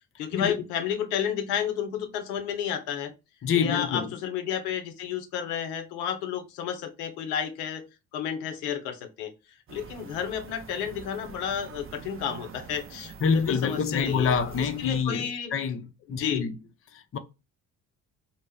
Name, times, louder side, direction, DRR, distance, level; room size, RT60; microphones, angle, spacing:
voice 1, 0.2-3.1 3.6-7.8 8.1-9.3 9.7-15.5 16.1-16.4, left 8 dB, 90° left, 0.6 m, -31 dB
voice 2, 3.4-4.1 13.2-16.6 16.9-17.2, left 6 dB, 30° left, 0.5 m, -27 dB
sound 1, 9.7-15.0, right 6 dB, 30° right, 0.5 m, -45 dB
2.1 x 2.0 x 3.3 m
hypercardioid pair, 50°, 43 cm